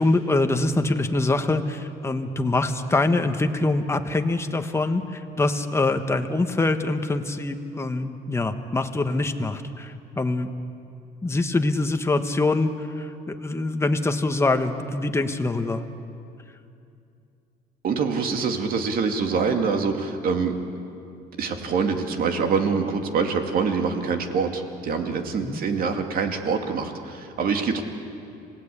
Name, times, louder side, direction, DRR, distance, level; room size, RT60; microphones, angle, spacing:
voice 1, 0.0-10.5 11.2-15.8 25.4-25.6, left 2 dB, 15° left, 6 dB, 1.4 m, -24 dB
voice 2, 17.8-20.5 21.4-27.8, right 5 dB, 60° right, 4 dB, 2.4 m, -25 dB
27.0 x 18.0 x 8.5 m, 2.5 s
cardioid pair, 110°, 17 cm